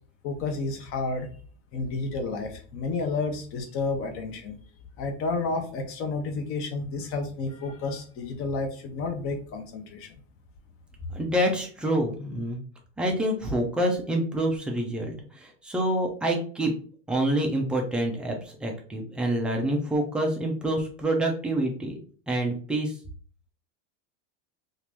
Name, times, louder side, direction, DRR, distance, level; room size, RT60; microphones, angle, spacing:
voice 1, 0.2-1.3 1.7-4.6 5.0-10.1, left 3 dB, 40° left, 5 dB, 0.8 m, -31 dB
voice 2, 11.1-12.6 13.0-16.7 17.1-22.0 22.3-22.9, right 1 dB, 5° right, 0 dB, 0.3 m, -27 dB
2.9 x 2.5 x 3.3 m, 0.42 s
supercardioid pair, 145°, 35 cm